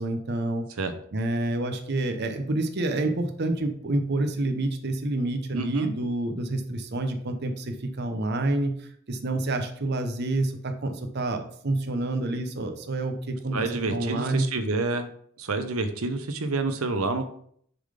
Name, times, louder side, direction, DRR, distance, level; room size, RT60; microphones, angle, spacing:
voice 1, 0.0-0.7 1.1-14.4, right 2 dB, 50° right, 6 dB, 0.8 m, -28 dB
voice 2, 5.5-5.9 13.5-15.1 15.4-17.3, right 3 dB, 85° right, 8 dB, 0.8 m, -28 dB
6.8 x 3.9 x 5.0 m, 0.63 s
head